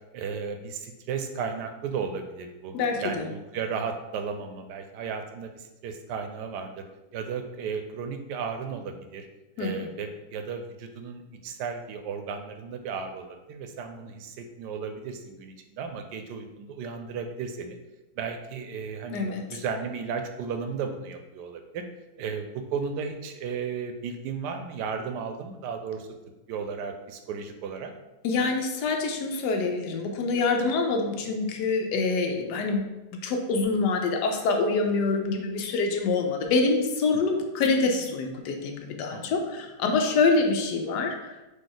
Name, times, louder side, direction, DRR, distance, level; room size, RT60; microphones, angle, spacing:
voice 1, 0.1-2.7 3.0-6.8 7.1-9.3 9.6-17.8 18.2-21.8 22.2-26.1 26.5-27.9 39.1-39.4, right 6 dB, 90° right, 6 dB, 1.2 m, -34 dB
voice 2, 2.7-3.3 9.6-9.7 19.1-19.6 28.2-41.5, left 3 dB, 90° left, 3 dB, 1.2 m, -26 dB
4.1 x 2.9 x 3.9 m, 1.0 s
omnidirectional pair, 1.7 m